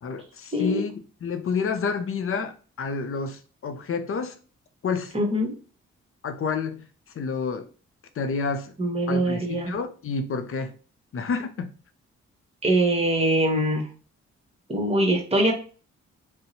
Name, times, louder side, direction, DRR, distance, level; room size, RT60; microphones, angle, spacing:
voice 1, 0.0-4.3 4.8-5.1 6.2-6.8 7.2-7.7 8.2-8.7 9.1-10.7 11.1-11.7, left 5 dB, 45° left, 0.6 m, -29 dB
voice 2, 0.5-0.8 5.1-5.5 8.8-9.7 12.6-13.9 14.7-15.5, right 1 dB, 20° right, 1.1 m, -23 dB
2.6 x 2.1 x 3.9 m
supercardioid pair, 40°, 31 cm